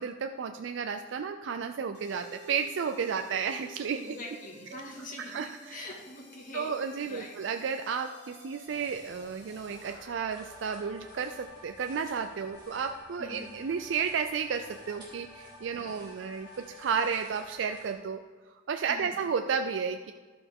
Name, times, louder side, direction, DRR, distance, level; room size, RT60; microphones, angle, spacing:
voice 1, 0.0-4.0 5.3-5.7 6.5-18.2 18.7-20.1, right 6 dB, 65° right, 7 dB, 0.4 m, -32 dB
sound 1, 1.9-17.9, left 1 dB, 60° left, 1.8 m, -52 dB
voice 2, 3.9-7.4 13.2-13.5 15.7-16.0 18.9-19.2, left 2 dB, 45° left, -1 dB, 1.8 m, -44 dB
sound 2, 8.6-17.9, right 2 dB, 20° right, 2.4 m, -57 dB
12.0 x 6.8 x 3.6 m, 1.5 s
head